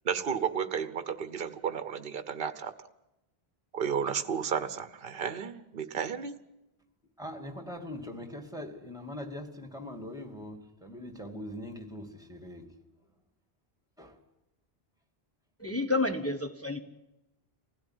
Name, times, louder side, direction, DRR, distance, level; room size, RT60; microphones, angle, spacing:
voice 1, 0.0-2.7 3.7-6.3, right 7 dB, 60° right, 1.2 m, -32 dB
voice 2, 7.2-12.8 14.0-14.2, left 1 dB, 5° right, 2.6 m, -42 dB
voice 3, 15.6-16.8, left 2 dB, 15° left, 1.2 m, -30 dB
25.0 x 16.0 x 9.9 m
omnidirectional pair, 1.1 m